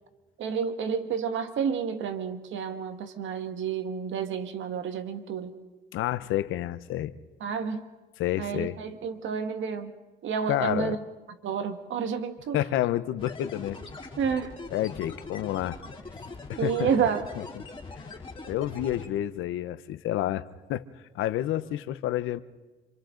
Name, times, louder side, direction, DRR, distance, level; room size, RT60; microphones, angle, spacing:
voice 1, 0.4-5.5 7.4-7.8 8.4-9.9 10.2-11.0 11.4-12.6 14.2-14.5 16.6-17.3, right 6 dB, 75° right, 8 dB, 1.7 m, -30 dB
voice 2, 5.9-7.1 8.2-8.8 10.5-10.9 12.5-13.8 14.7-15.8 16.5-16.9 17.4-17.5 18.5-20.8 21.1-22.4, left 13 dB, 90° left, 13 dB, 0.8 m, -29 dB
sound 1, 13.2-19.1, left 3 dB, 25° left, 4.0 m, -42 dB
28.0 x 26.5 x 3.9 m, 1.2 s
cardioid pair, 90°, 20 cm